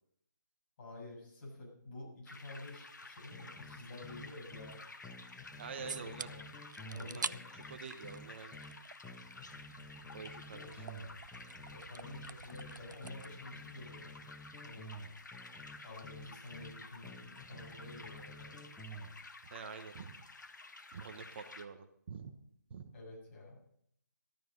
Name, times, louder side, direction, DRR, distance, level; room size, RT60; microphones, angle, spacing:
voice 1, 0.8-4.8 5.8-6.5 6.8-7.5 10.5-11.1 11.7-14.1 14.6-14.9 15.8-18.7 22.9-23.6, left 2 dB, 35° left, -3 dB, 7.0 m, -50 dB
sound 1, 2.3-21.7, left 3 dB, 75° left, 1.4 m, -52 dB
sound 2, 3.3-4.8 5.0-8.8 9.0-12.8 13.0-16.8 17.0-19.1, equal, 5° left, 1.4 m, -51 dB
voice 2, 5.6-6.3 7.0-7.2 7.5-8.6 10.1-10.9 17.5-18.0 19.4-20.2 20.9-22.3 22.7-22.9, right 6 dB, 35° right, 7 dB, 1.2 m, -47 dB
sound 3, 5.9-6.3 6.7-7.3 7.6-9.0 9.2-13.4, right 5 dB, 75° right, 0.5 m, -46 dB
13.5 x 12.5 x 5.3 m, 0.69 s
figure-of-eight pair, 150°, 10 cm